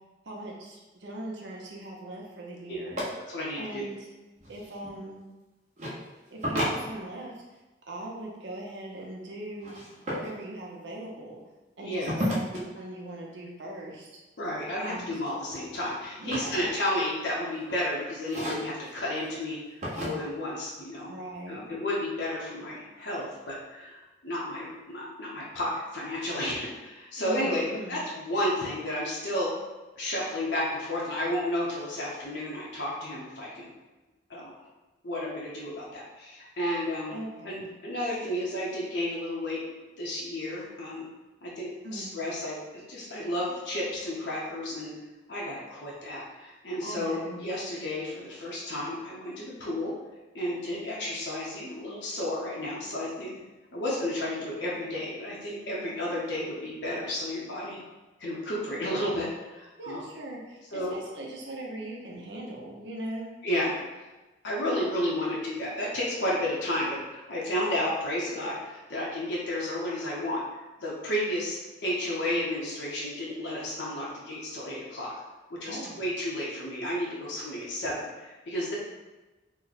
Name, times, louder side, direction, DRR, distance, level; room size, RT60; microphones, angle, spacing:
voice 1, 0.3-3.0 3.6-4.0 4.5-5.3 6.3-7.3 7.9-9.8 10.1-11.4 11.8-12.5 12.7-14.1 14.9-15.1 16.2-16.7 21.1-21.7 27.2-28.0 37.1-37.7 41.8-42.2 46.8-47.4 59.8-63.3 75.6-76.0, right 1 dB, 85° right, -2 dB, 0.8 m, -40 dB
sound 1, 2.9-3.0 4.4-4.9 5.8-6.0 6.4-7.4 9.6-10.3 12.1-12.6 14.5-14.9 15.3-17.2 17.6-17.8 18.2-18.9 19.8-20.1, equal, 40° right, 0.9 m, -33 dB
voice 2, 3.3-3.9 11.8-12.1 14.4-19.6 20.0-21.1 21.5-29.5 30.0-33.7 34.3-34.5 35.0-37.1 37.4-39.6 40.0-41.0 41.4-42.6 42.9-44.9 45.3-49.9 50.3-53.3 53.7-57.8 58.2-60.0 60.7-61.0 63.4-63.8 64.4-70.4 70.8-75.1 75.5-78.7, left 1 dB, 80° left, -5 dB, 0.8 m, -32 dB
3.1 x 2.1 x 3.9 m, 1.1 s
head